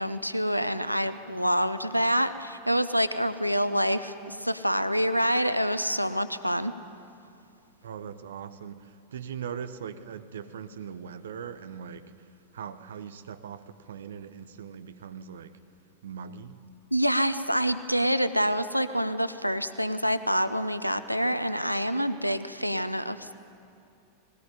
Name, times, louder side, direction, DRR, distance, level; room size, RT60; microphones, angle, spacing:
voice 1, 0.0-6.7 16.9-23.3, equal, 90° left, 12 dB, 0.6 m, -27 dB
voice 2, 7.8-12.1 12.5-15.6 16.0-16.6, right 7 dB, 65° right, 11 dB, 1.0 m, -40 dB
20.0 x 18.5 x 9.5 m, 2.5 s
figure-of-eight pair, 90°, 0 cm